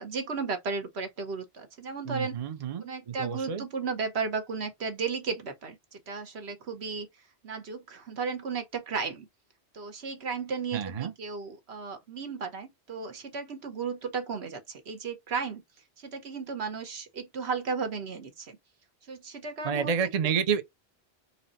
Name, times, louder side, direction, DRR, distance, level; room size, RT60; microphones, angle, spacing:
voice 1, 0.0-2.4 2.8-7.1 7.4-9.3 9.7-15.6 16.0-18.6 19.1-19.9, right 5 dB, 75° right, 1.3 m, -34 dB
voice 2, 2.1-3.6 10.7-11.1 19.6-20.6, right 7 dB, 45° right, 0.6 m, -29 dB
4.1 x 2.1 x 3.9 m
omnidirectional pair, 1.1 m